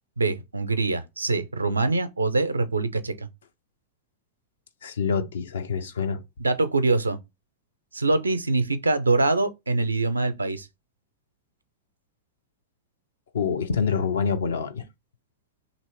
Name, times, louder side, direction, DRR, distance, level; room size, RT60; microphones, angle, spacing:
voice 1, 0.2-3.3 6.4-7.2 7.9-10.7, right 3 dB, 80° right, 0.5 m, -24 dB
voice 2, 4.8-6.2 13.3-14.8, left 6 dB, 65° left, 0.6 m, -26 dB
3.0 x 2.8 x 4.4 m
figure-of-eight pair, 90°, 0 cm